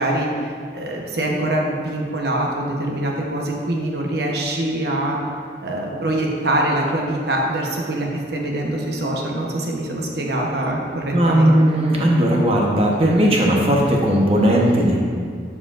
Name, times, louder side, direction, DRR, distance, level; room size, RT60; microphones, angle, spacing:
voice 1, 0.0-5.2 5.6-11.6, right 1 dB, 60° right, -1 dB, 1.0 m, -24 dB
voice 2, 11.1-15.0, right 1 dB, 30° right, -2 dB, 0.9 m, -17 dB
11.0 x 4.8 x 2.5 m, 2.1 s
head